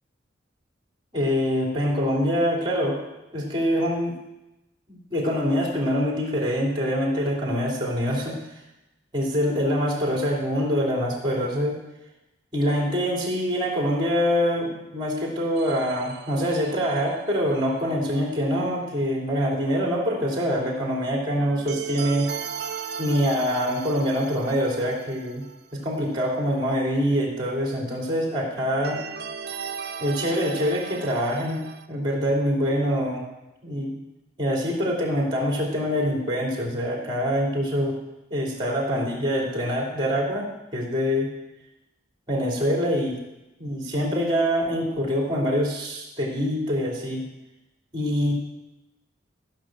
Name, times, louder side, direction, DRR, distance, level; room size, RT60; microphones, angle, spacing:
voice 1, 1.1-3.0 3.3-4.2 4.9-8.4 9.1-11.8 12.5-22.3 23.0-25.4 25.7-29.0 30.0-33.3 33.6-33.9 34.4-38.0 38.3-41.3 42.3-43.2 43.6-47.2 47.9-48.3, equal, 25° right, -1 dB, 3.0 m, -25 dB
sound 1, 15.6-17.4 21.4-25.8 26.0-26.1 28.6-31.9, right 6 dB, 55° right, 0.6 m, -37 dB
14.5 x 6.0 x 7.5 m, 0.96 s
head